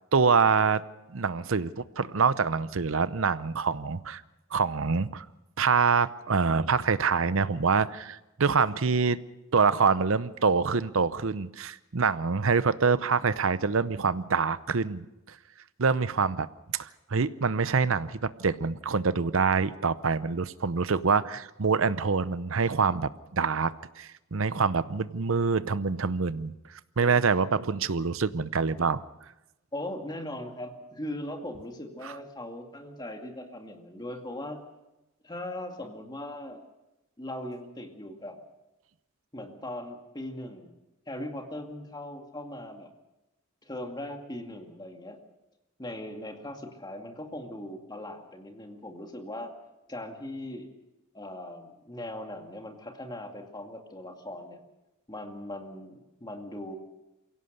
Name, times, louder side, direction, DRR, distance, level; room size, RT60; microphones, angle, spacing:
voice 1, 0.1-0.8 1.1-4.2 4.5-5.3 5.6-9.2 9.5-15.0 15.8-16.5 16.7-26.5 27.0-29.0 32.0-32.1, right 5 dB, 65° right, 15 dB, 0.7 m, -25 dB
voice 2, 29.7-34.6 35.2-36.6 37.2-38.4 39.3-40.7 41.1-42.9 43.6-45.2 45.8-49.5 49.9-50.7 51.1-54.6 55.1-56.8, left 1 dB, 20° left, 3 dB, 2.3 m, -39 dB
23.0 x 17.0 x 6.7 m, 0.96 s
head